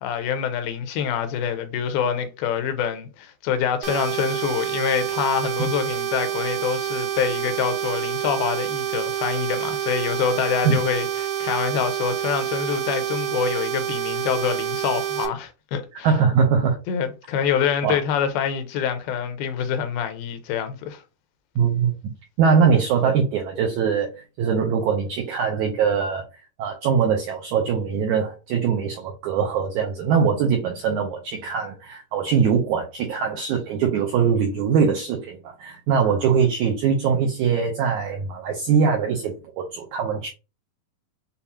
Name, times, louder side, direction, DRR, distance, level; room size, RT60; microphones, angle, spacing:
voice 1, 0.0-16.1 16.9-21.0, left 8 dB, 85° left, 2.5 m, -26 dB
sound 1, 3.8-15.2, right 10 dB, 65° right, 1.8 m, -27 dB
voice 2, 16.0-16.8 17.8-18.0 21.6-21.9 22.4-24.1 24.4-26.2 26.6-40.3, right 6 dB, 85° right, 1.7 m, -22 dB
6.9 x 2.4 x 2.8 m
omnidirectional pair, 4.3 m